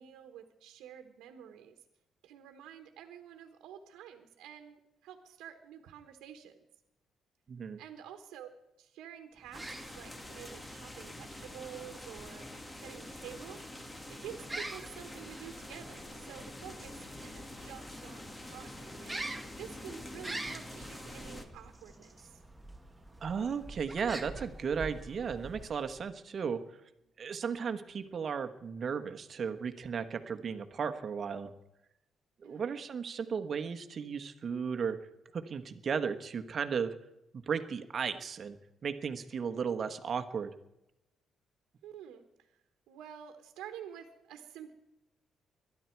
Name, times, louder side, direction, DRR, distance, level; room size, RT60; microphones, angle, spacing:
voice 1, 0.0-1.8 2.2-6.5 7.8-8.5 8.8-9.7 9.9-13.6 13.9-22.4 32.4-32.8 41.8-42.6 42.9-44.7, right 9 dB, 90° right, 6 dB, 1.3 m, -49 dB
voice 2, 7.5-7.8 23.2-26.6 27.2-31.5 32.4-35.0 35.3-37.0 37.5-38.6 38.8-40.5, right 6 dB, 50° right, 9 dB, 1.3 m, -35 dB
sound 1, 9.4-26.1, right 2 dB, 10° right, 1.6 m, -47 dB
sound 2, 9.5-21.4, left 1 dB, 20° left, 1.8 m, -46 dB
22.5 x 11.0 x 4.6 m, 0.90 s
cardioid pair, 90°, 0 cm